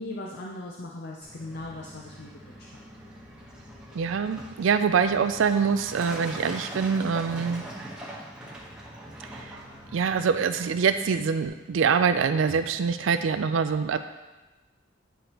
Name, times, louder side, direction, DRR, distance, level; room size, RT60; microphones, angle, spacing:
voice 1, 0.0-2.7, left 2 dB, 55° left, -2 dB, 0.6 m, -38 dB
Truck, 1.2-11.5, right 1 dB, 5° right, 1.2 m, -42 dB
voice 2, 3.9-7.6 9.2-9.6 9.9-14.0, right 6 dB, 75° right, 10 dB, 0.4 m, -25 dB
10.0 x 5.0 x 3.0 m, 1.1 s
head